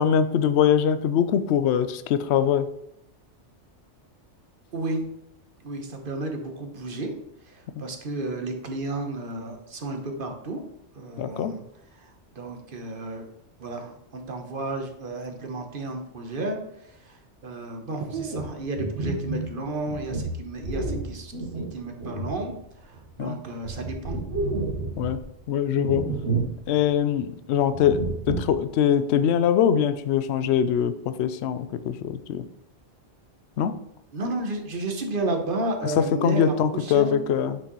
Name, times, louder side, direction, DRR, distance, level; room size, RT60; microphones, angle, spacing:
voice 1, 0.0-2.7 7.8-7.9 11.2-11.5 23.2-23.4 25.0-25.2 25.5-26.1 26.7-32.4 33.6-33.7 35.8-37.6, left 8 dB, 70° left, 11 dB, 0.8 m, -23 dB
voice 2, 4.7-5.1 5.6-7.1 7.4-10.7 10.9-11.6 12.0-13.3 13.6-22.6 22.8-24.2 34.1-37.2, right 2 dB, 50° right, 4 dB, 1.2 m, -32 dB
sound 1, 18.1-23.1 23.4-25.3 25.7-26.6 26.9-27.0 27.7-28.6, right 3 dB, 70° right, 1.6 m, -30 dB
6.7 x 6.1 x 3.1 m, 0.81 s
omnidirectional pair, 1.2 m